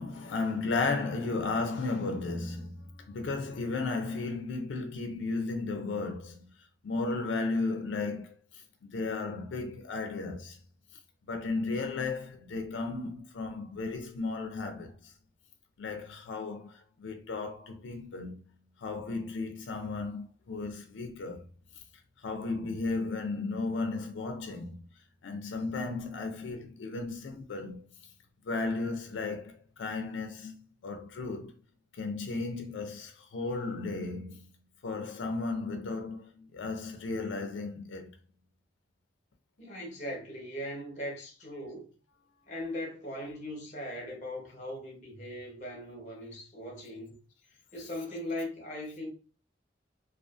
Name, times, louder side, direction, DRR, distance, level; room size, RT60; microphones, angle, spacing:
voice 1, 0.0-6.5 6.8-10.6 11.3-15.1 15.8-18.4 18.8-21.5 22.2-24.8 25.2-27.8 28.5-31.5 31.9-34.5 34.8-38.1, left 3 dB, 75° left, 0.4 m, -34 dB
voice 2, 39.6-41.9 42.5-47.2 47.7-49.1, left 1 dB, 40° left, 0.9 m, -39 dB
2.4 x 2.3 x 2.4 m
head